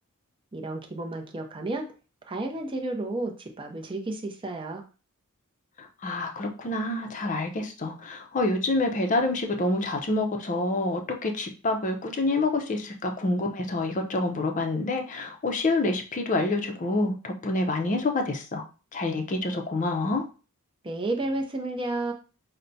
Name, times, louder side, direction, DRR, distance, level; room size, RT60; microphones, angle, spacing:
voice 1, 0.5-1.9 2.3-4.8 20.8-22.1, right 2 dB, 20° right, 2 dB, 0.5 m, -31 dB
voice 2, 5.8-18.6 18.9-20.2, left 2 dB, 35° left, 4 dB, 0.5 m, -27 dB
5.6 x 2.1 x 2.6 m, 0.34 s
head